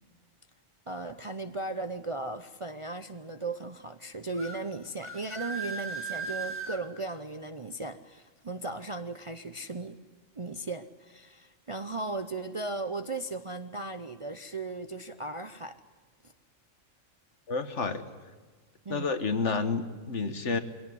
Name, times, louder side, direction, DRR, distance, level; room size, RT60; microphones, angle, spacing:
voice 1, 0.9-10.0 10.4-15.8 18.8-19.1, right 2 dB, 30° right, 8 dB, 0.6 m, -37 dB
sound 1, 4.3-4.6 5.0-6.8, right 4 dB, 10° right, 2.0 m, -37 dB
voice 2, 17.5-18.0 18.9-20.6, left 4 dB, 60° left, 9 dB, 1.7 m, -30 dB
22.5 x 17.5 x 9.6 m, 1.4 s
omnidirectional pair, 1.4 m